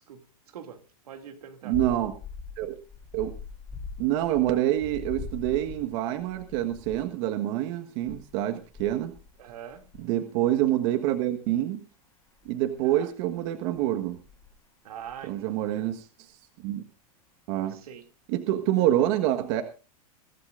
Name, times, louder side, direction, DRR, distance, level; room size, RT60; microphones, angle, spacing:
voice 1, 1.1-1.7 9.4-9.8 12.8-13.1 14.8-15.8 17.7-18.0, right 8 dB, 85° right, 2.6 m, -43 dB
voice 2, 1.6-2.1 2.6-2.8 3.1-3.3 4.0-9.1 10.0-11.8 12.4-14.2 15.2-16.1 16.6-16.8 17.5-17.8 18.3-19.6, right 13 dB, 55° right, 1.5 m, -26 dB
sound 1, 1.7-7.1 8.0-10.0 12.3-13.0 13.8-14.6 15.0-15.4, left 5 dB, 20° left, 3.0 m, -42 dB
23.0 x 12.5 x 2.6 m
supercardioid pair, 140°, 19 cm